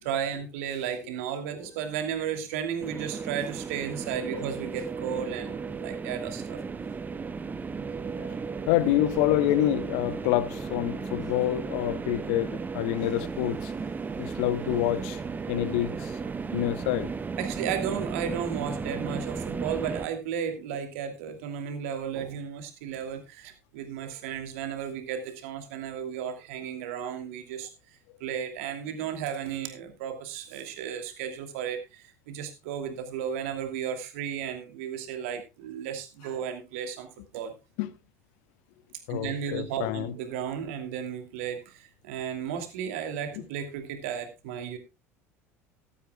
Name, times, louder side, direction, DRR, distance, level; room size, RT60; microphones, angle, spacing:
voice 1, 0.0-6.6 16.2-16.3 17.4-27.7 28.2-37.1 37.3-37.5 39.1-44.8, right 8 dB, 65° right, 2.6 m, -34 dB
sound 1, 2.8-20.1, right 5 dB, 20° right, 0.9 m, -35 dB
voice 2, 8.7-13.7 14.2-15.2 15.5-16.1 16.5-17.1 37.8-37.9 39.1-40.1, left 14 dB, 60° left, 1.0 m, -27 dB
16.0 x 13.0 x 2.3 m
figure-of-eight pair, 65°, 8 cm